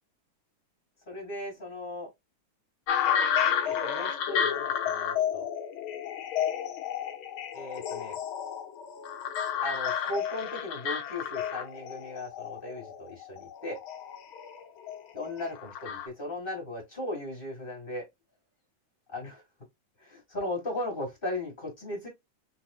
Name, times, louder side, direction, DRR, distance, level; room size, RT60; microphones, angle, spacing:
voice 1, 1.1-2.1 3.6-5.5 7.5-8.2 9.6-13.8 15.1-18.1 19.1-19.4 20.0-22.1, left 1 dB, 20° left, 1.8 m, -37 dB
sound 1, 2.9-16.1, left 8 dB, 90° left, 1.1 m, -31 dB
4.6 x 4.1 x 2.4 m
omnidirectional pair, 3.5 m